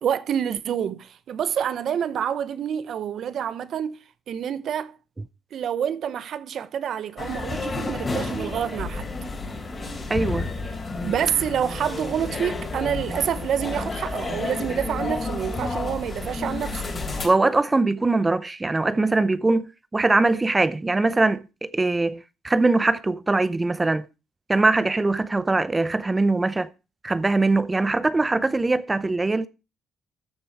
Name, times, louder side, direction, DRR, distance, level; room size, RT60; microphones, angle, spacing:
voice 1, 0.0-4.0 4.3-4.9 5.5-9.1 11.0-16.8, right 9 dB, 65° right, 0.8 m, -27 dB
sound 1, 7.2-17.3, left 3 dB, 35° left, 3.5 m, -31 dB
voice 2, 10.1-10.5 17.2-24.0 24.5-26.7 27.0-29.5, right 3 dB, 20° right, 0.6 m, -22 dB
13.5 x 6.3 x 4.7 m
cardioid pair, 90°, 0 cm